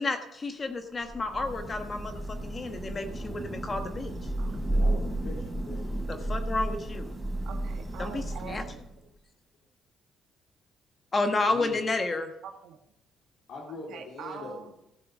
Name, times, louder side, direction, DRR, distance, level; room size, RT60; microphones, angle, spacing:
voice 1, 0.0-4.1 6.1-7.1 8.0-8.6 11.1-12.3, left 3 dB, 30° left, 6 dB, 1.3 m, -31 dB
Thunder / Rain, 1.0-9.1, right 1 dB, 10° right, 3.4 m, -33 dB
voice 2, 4.5-6.3 11.3-11.9 13.5-14.7, left 3 dB, 75° left, -5 dB, 3.2 m, -42 dB
voice 3, 7.4-9.1 12.4-12.8 13.9-14.7, right 7 dB, 80° right, 4 dB, 1.5 m, -43 dB
14.5 x 6.9 x 6.3 m, 0.84 s
cardioid pair, 105°, 0 cm